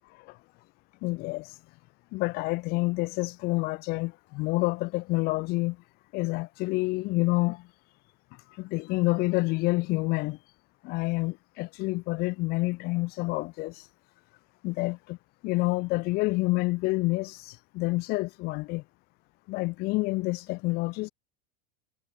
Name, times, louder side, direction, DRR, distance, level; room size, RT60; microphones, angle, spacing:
voice 1, 1.0-1.6 2.1-5.8 6.1-7.7 8.5-10.4 10.8-13.9 14.6-15.2 15.4-18.8 19.5-21.1, left 23 dB, 50° left, 1.3 m, -28 dB
supercardioid pair, 120°, 20 cm